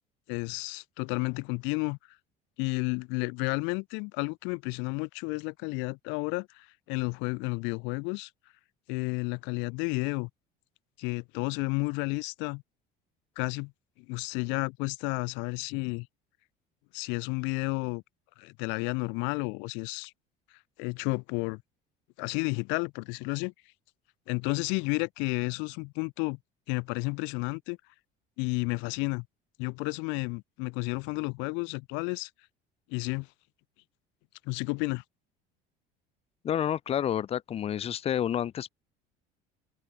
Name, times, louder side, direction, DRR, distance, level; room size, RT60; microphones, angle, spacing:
voice 1, 0.3-2.0 2.6-8.3 8.9-10.3 11.0-12.6 13.4-13.7 14.1-16.1 16.9-18.0 18.4-20.1 20.8-21.6 22.2-23.5 24.3-26.4 26.7-27.8 28.4-29.2 29.6-32.3 32.9-33.3 34.4-35.0, left 30 dB, 85° left, 6.7 m, -31 dB
voice 2, 36.4-38.7, left 10 dB, 30° left, 4.1 m, -29 dB
open air
cardioid pair, 175°, 19 cm